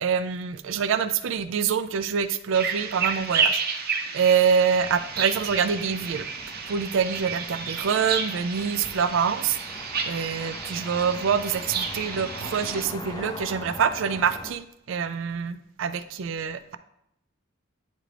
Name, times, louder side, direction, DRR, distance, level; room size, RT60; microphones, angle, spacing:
voice 1, 0.0-3.6 4.1-6.3 6.7-9.6 10.1-16.8, right 6 dB, 70° right, 12 dB, 0.4 m, -25 dB
sound 1, 2.5-12.8, right 5 dB, 50° right, 0.8 m, -31 dB
sound 2, 4.8-14.5, left 2 dB, 20° left, 0.4 m, -42 dB
9.1 x 3.7 x 3.3 m, 0.81 s
head